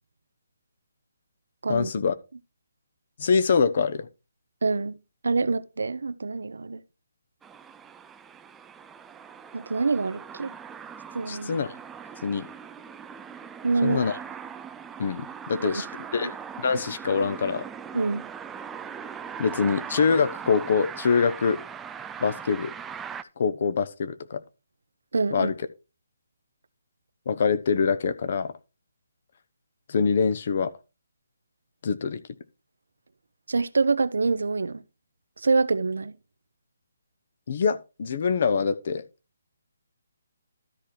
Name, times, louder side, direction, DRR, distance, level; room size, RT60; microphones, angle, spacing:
voice 1, 1.7-2.1 3.2-4.1 11.3-11.7 12.2-12.5 13.8-14.2 15.0-16.3 16.6-17.7 19.4-21.6 22.2-22.7 23.4-24.4 25.3-25.5 27.3-28.5 29.9-30.7 31.8-32.2 37.5-39.0, left 5 dB, 50° left, 1.0 m, -24 dB
voice 2, 4.6-5.0 5.2-6.8 9.5-10.5 11.1-11.6 13.6-14.0 15.7-15.8 17.9-18.3 25.1-25.5 33.5-34.8 35.4-36.2, right 4 dB, 80° right, 0.8 m, -25 dB
sound 1, 7.4-23.2, right 7 dB, 10° right, 0.4 m, -40 dB
13.0 x 4.4 x 4.9 m
hypercardioid pair, 160°, 0 cm